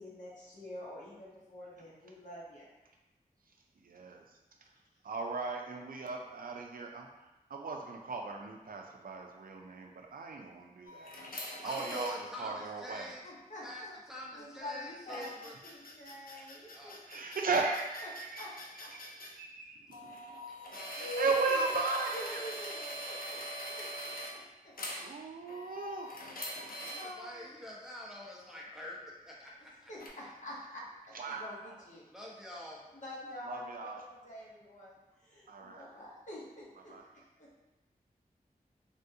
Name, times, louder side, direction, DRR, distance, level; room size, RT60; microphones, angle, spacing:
voice 1, 0.0-2.7 13.2-13.9 14.3-16.9 18.4-18.5 18.8-18.9 20.6-21.3 22.1-23.9 24.6-24.7 27.0-27.4 29.9-31.1 31.4-32.0 32.9-33.9 34.2-34.9 35.3-36.9 37.4-37.5, left 1 dB, 55° left, -6 dB, 1.1 m, -46 dB
voice 2, 3.9-4.2 5.0-7.1 7.5-11.1 11.6-13.1 17.1-20.0 20.8-22.4 25.0-26.2 31.1-31.8 33.4-34.0 35.5-35.9 36.8-37.0, right 4 dB, 70° right, 1 dB, 0.4 m, -36 dB
sound 1, 10.9-12.1 15.1-19.3 19.9-24.3 24.8-25.0 25.5-27.1 30.0-30.1, equal, 70° left, 0.6 m, -43 dB
voice 3, 11.6-13.2 13.6-15.6 16.7-17.0 26.2-26.4 26.8-30.3 32.0-32.8, left 1 dB, 5° right, -5 dB, 0.8 m, -46 dB
3.5 x 2.3 x 2.7 m, 1.0 s
cardioid pair, 50°, 15 cm